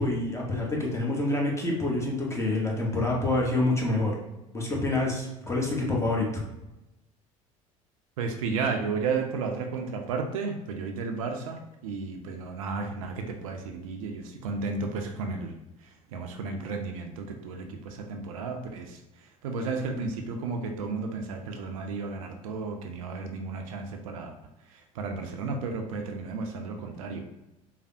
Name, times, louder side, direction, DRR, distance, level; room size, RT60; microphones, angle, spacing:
voice 1, 0.0-4.2 4.5-6.4, left 2 dB, 15° left, -2 dB, 0.8 m, -27 dB
voice 2, 8.2-15.5 15.8-19.0 19.4-24.3 24.7-27.3, right 4 dB, 80° right, 4 dB, 0.4 m, -33 dB
3.2 x 2.0 x 2.6 m, 0.95 s
hypercardioid pair, 65°, 17 cm